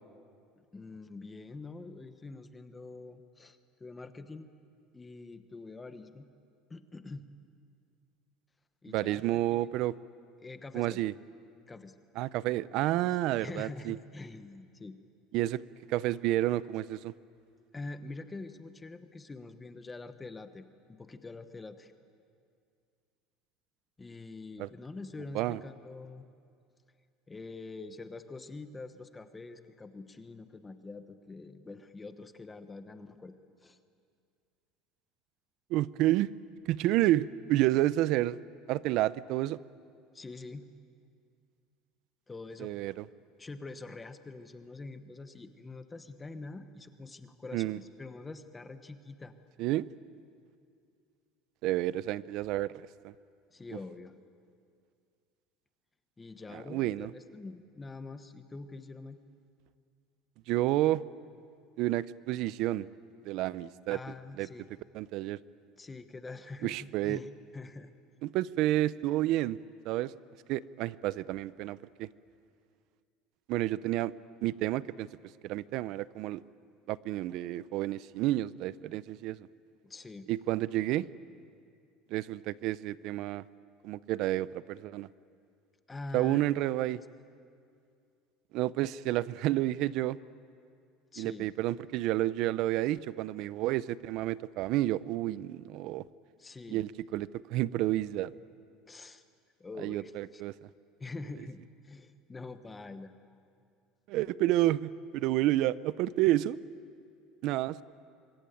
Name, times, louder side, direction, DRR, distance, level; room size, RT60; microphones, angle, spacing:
voice 1, 0.7-4.5 4.9-6.3 6.7-7.3 8.8-9.7 10.4-11.0 11.7-11.9 13.0-15.0 17.7-21.9 24.0-26.2 27.3-33.3 33.6-33.8 40.1-40.7 42.3-42.7 43.4-49.3 53.5-54.2 56.2-59.2 63.9-64.7 65.8-67.9 79.8-80.3 85.9-86.4 86.9-87.0 91.1-91.5 96.4-96.8 98.9-99.2 99.6-100.4 101.0-103.1, left 3 dB, 10° left, 9 dB, 1.0 m, -45 dB
voice 2, 8.9-9.9 10.7-11.1 12.2-14.0 15.3-15.6 15.9-17.1 24.6-24.7 25.3-25.6 35.7-36.3 36.7-38.4 38.7-39.6 42.6-43.1 47.5-47.8 49.6-49.9 51.6-53.1 56.5-57.1 60.5-61.0 61.8-62.9 63.2-64.0 64.4-64.5 64.9-65.4 66.6-67.2 68.2-69.6 69.8-70.1 70.5-72.1 73.5-74.1 74.4-75.1 75.4-76.4 76.9-79.5 80.3-81.1 82.1-83.4 83.8-85.1 86.1-87.0 88.5-90.2 91.2-96.0 96.7-98.3 99.8-100.7 104.1-106.6 107.4-107.8, right 15 dB, 50° right, 18 dB, 0.6 m, -30 dB
25.5 x 22.0 x 9.2 m, 2.3 s
cardioid pair, 170°, 0 cm